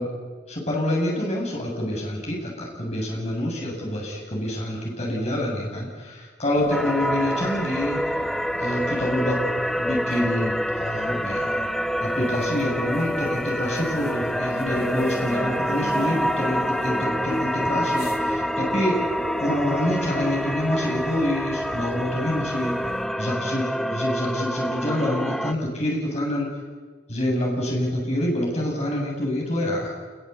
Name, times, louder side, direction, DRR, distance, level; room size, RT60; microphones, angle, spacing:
voice 1, 0.5-8.0 8.6-9.4 9.8-11.6 12.0-19.0 19.4-22.8 23.2-26.5 27.1-29.9, left 1 dB, 35° left, -1 dB, 7.7 m, -26 dB
sound 1, 6.5-23.1, left 1 dB, 55° left, 2.6 m, -44 dB
sound 2, 6.7-25.5, equal, ahead, 0.8 m, -27 dB
27.5 x 22.0 x 8.4 m, 1.5 s
head